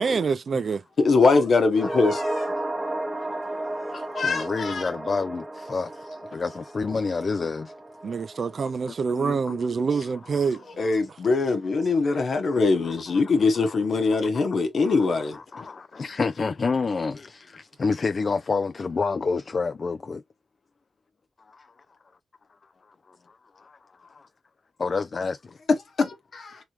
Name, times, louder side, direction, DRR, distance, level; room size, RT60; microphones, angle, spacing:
voice 1, 0.0-0.8 8.0-10.6 11.9-12.0, right 5 dB, 60° right, 0.3 m, -26 dB
voice 2, 1.0-2.5 4.1-4.8 10.8-15.4 26.0-26.6, left 4 dB, 65° left, 1.0 m, -22 dB
sound 1, 1.7-10.2 10.5-10.6, right 1 dB, 20° right, 0.9 m, -34 dB
voice 3, 4.2-6.0 6.3-7.7 9.2-9.6 9.9-10.1 10.8-10.9 12.0-12.3 12.8-12.9 13.6-13.8 14.1-14.4 14.8-15.0 15.3-20.2 21.5-21.7 23.1-23.2 23.6-24.3 24.8-25.5, left 4 dB, 50° left, 0.3 m, -29 dB
3.5 x 3.1 x 2.9 m
cardioid pair, 70°, 0 cm